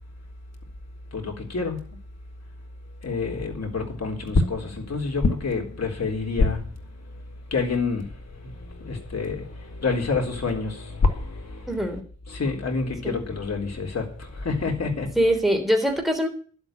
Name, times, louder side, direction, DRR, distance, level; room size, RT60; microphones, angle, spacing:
voice 1, 1.1-1.8 3.0-6.6 7.5-11.7 12.3-15.2, left 4 dB, 55° left, 3.9 m, -29 dB
sound 1, 3.1-3.7 4.3-7.5 10.1-11.7, left 3 dB, 75° left, 2.4 m, -27 dB
voice 2, 11.7-12.0 13.0-13.2 15.2-16.3, equal, ahead, 3.4 m, -22 dB
11.5 x 8.0 x 8.9 m
wide cardioid pair, 120°, 30 cm